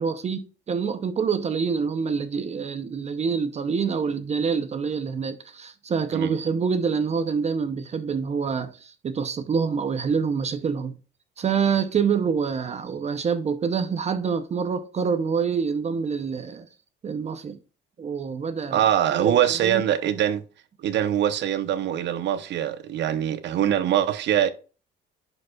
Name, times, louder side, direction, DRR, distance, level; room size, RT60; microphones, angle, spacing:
voice 1, 0.0-11.0 11.4-16.7 17.0-17.6 18.0-18.8 19.1-19.8, right 6 dB, 35° right, 0.7 m, -26 dB
voice 2, 18.7-20.4 20.8-24.5, right 10 dB, 70° right, 0.9 m, -23 dB
10.5 x 5.0 x 2.3 m
cardioid pair, 130°, 19 cm